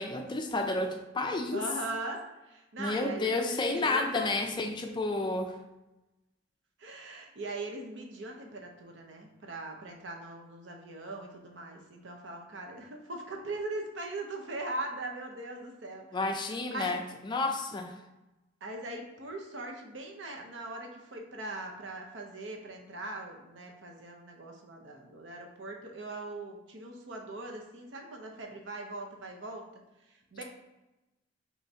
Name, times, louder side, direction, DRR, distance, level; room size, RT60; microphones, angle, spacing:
voice 1, 0.0-1.6 2.8-5.5 16.1-17.9, left 2 dB, 25° left, 4 dB, 0.4 m, -31 dB
voice 2, 1.5-4.4 6.8-16.1 16.7-17.0 18.6-29.6 30.1-30.4, right 2 dB, 65° right, 2 dB, 0.8 m, -40 dB
5.7 x 3.1 x 2.8 m, 0.99 s
head